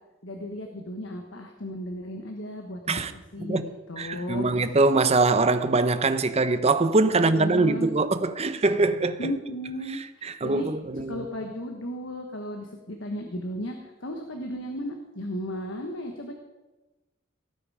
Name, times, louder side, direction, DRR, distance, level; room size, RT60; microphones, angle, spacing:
voice 1, 0.2-4.5 4.8-4.9 7.0-7.9 9.2-10.7 11.1-16.3, left 1 dB, 80° left, 1.4 m, -35 dB
voice 2, 4.0-9.2 10.2-11.3, right 3 dB, 35° right, 0.8 m, -23 dB
18.0 x 8.9 x 5.0 m
head